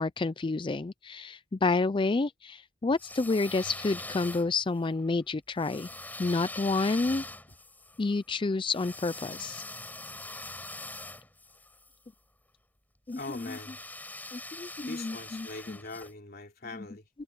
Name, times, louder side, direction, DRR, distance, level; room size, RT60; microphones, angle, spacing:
voice 1, 0.0-5.9 6.2-7.2 8.0-9.6 13.1-13.2 14.3-15.5, left 3 dB, 25° left, 0.4 m, -29 dB
sound 1, 2.9-4.8 5.6-11.9 13.1-16.1, left 2 dB, 10° left, 7.0 m, -43 dB
voice 2, 13.1-13.8 14.9-17.1, left 3 dB, 50° left, 3.4 m, -42 dB
head